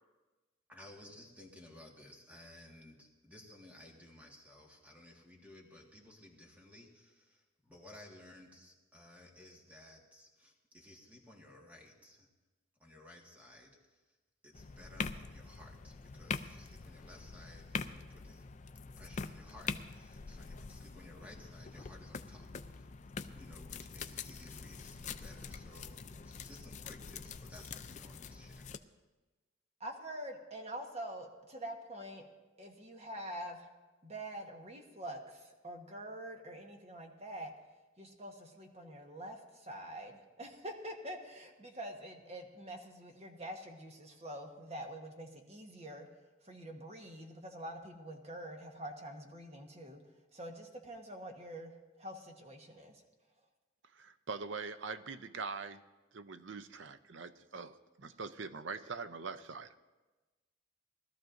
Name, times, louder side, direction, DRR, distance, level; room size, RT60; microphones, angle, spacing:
voice 1, 0.7-12.3 12.8-14.2 14.4-18.5 19.0-22.9 23.3-28.7, left 1 dB, 10° right, -1 dB, 1.7 m, -56 dB
sound 1, 14.5-28.8, left 5 dB, 40° left, 0.4 m, -44 dB
voice 2, 29.8-32.3 32.6-33.7 34.0-37.5 38.0-46.1 46.4-50.0 50.3-51.7 52.0-53.0, right 1 dB, 35° right, 3 dB, 1.3 m, -46 dB
voice 3, 53.9-55.8 56.1-59.8, right 4 dB, 65° right, 11 dB, 0.6 m, -43 dB
20.0 x 13.0 x 2.6 m, 1.2 s
head